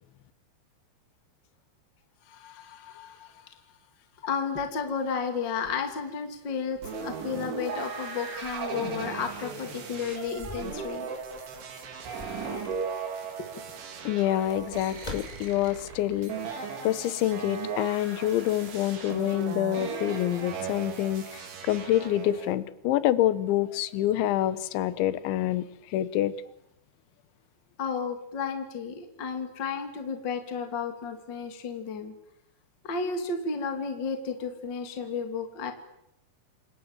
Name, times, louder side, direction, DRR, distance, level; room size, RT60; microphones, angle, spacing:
voice 1, 2.3-3.4 4.2-11.1 27.8-32.1 32.8-35.7, left 5 dB, 30° left, 5 dB, 2.6 m, -33 dB
sound 1, 6.8-6.9 7.3-7.4 8.3-11.4 11.8-13.1 13.9-16.1 16.4-16.5, left 2 dB, 10° left, 5.0 m, -45 dB
sound 2, 6.8-22.5, right 6 dB, 75° right, 6.2 m, -37 dB
voice 2, 14.1-26.4, left 13 dB, 80° left, 14 dB, 3.5 m, -27 dB
29.5 x 26.0 x 7.4 m, 0.82 s
omnidirectional pair, 5.4 m